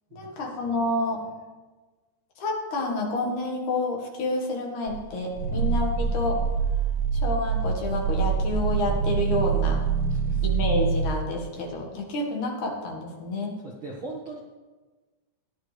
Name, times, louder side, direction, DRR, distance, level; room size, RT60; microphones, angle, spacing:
voice 1, 0.2-1.2 2.4-6.4 7.2-9.8 10.4-13.5, left 2 dB, 55° left, 0 dB, 2.7 m, -29 dB
Growling, 4.9-11.2, right 6 dB, 90° right, 2.9 m, -25 dB
voice 2, 10.1-10.5 13.6-14.4, right 3 dB, 70° right, -2 dB, 1.2 m, -40 dB
16.5 x 10.5 x 3.4 m, 1.3 s
omnidirectional pair, 4.8 m